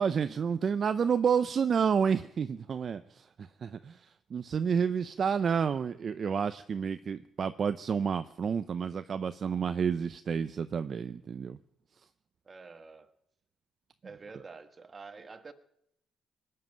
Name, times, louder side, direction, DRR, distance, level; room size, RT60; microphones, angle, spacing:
voice 1, 0.0-11.6, right 6 dB, 50° right, 12 dB, 0.6 m, -30 dB
voice 2, 12.4-13.1 14.0-15.5, right 4 dB, 35° right, 10 dB, 1.4 m, -48 dB
19.5 x 7.6 x 9.2 m, 0.79 s
cardioid pair, 90°, 0 cm